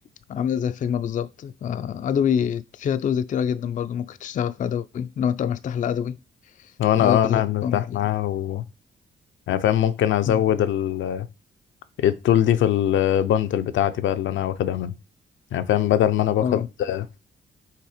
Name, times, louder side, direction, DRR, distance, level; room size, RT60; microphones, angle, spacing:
voice 1, 0.3-6.2 6.6-6.7 7.0-8.0 10.3-10.4 16.4-16.7, left 8 dB, 45° left, 0.4 m, -26 dB
voice 2, 6.8-8.6 9.5-11.3 12.0-14.9 15.5-17.1, left 11 dB, 85° left, 0.6 m, -22 dB
5.7 x 3.3 x 4.9 m
cardioid pair, 100°, 19 cm